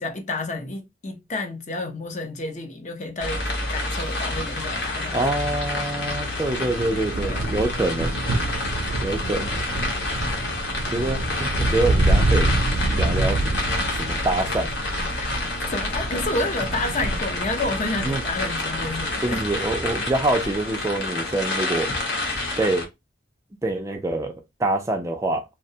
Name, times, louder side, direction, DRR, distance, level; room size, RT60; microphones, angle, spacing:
voice 1, 0.0-5.3 7.2-7.6 15.2-19.4, left 2 dB, 40° left, 0.5 m, -30 dB
sound 1, 3.2-22.9, left 2 dB, 70° left, 1.0 m, -29 dB
voice 2, 5.1-8.1 9.0-9.7 10.9-12.5 12.9-13.4 13.9-14.7 18.0-18.2 19.2-21.9 22.6-22.9 23.6-24.3 24.6-25.4, right 2 dB, 15° right, 0.3 m, -25 dB
sound 2, 6.0-20.5, right 2 dB, 90° right, 0.4 m, -27 dB
2.7 x 2.1 x 2.6 m
head